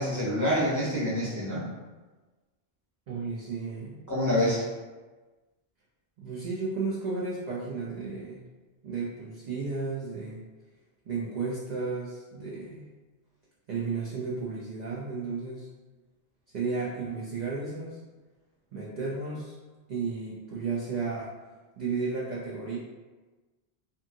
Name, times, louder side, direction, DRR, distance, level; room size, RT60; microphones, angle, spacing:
voice 1, 0.0-1.6 4.1-4.7, left 1 dB, 20° left, -10 dB, 0.6 m, -26 dB
voice 2, 3.1-4.0 4.3-4.4 6.2-8.4 8.8-10.4 11.1-12.8 13.7-15.7 16.5-18.0 18.7-19.6 19.9-21.3 21.8-22.8, right 4 dB, 60° right, -6 dB, 0.4 m, -33 dB
2.7 x 2.6 x 2.5 m, 1.3 s
omnidirectional pair, 1.2 m